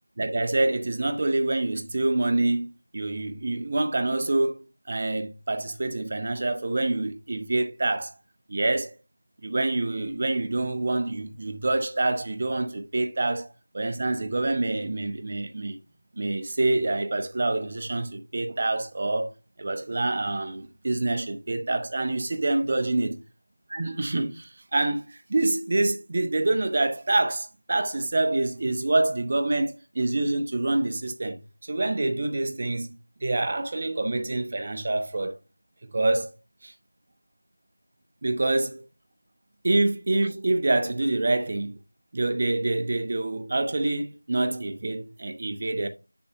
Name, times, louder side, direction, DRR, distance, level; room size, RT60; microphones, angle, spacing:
voice 1, 0.2-8.1 8.5-8.9 9.4-13.5 13.7-15.8 16.1-19.3 19.6-23.2 23.7-35.3 35.9-36.3 36.6-36.7 38.2-38.8 39.6-41.8 42.1-45.9, right 2 dB, 20° right, 0.5 m, -26 dB
6.9 x 5.3 x 2.7 m
figure-of-eight pair, 175°, 0 cm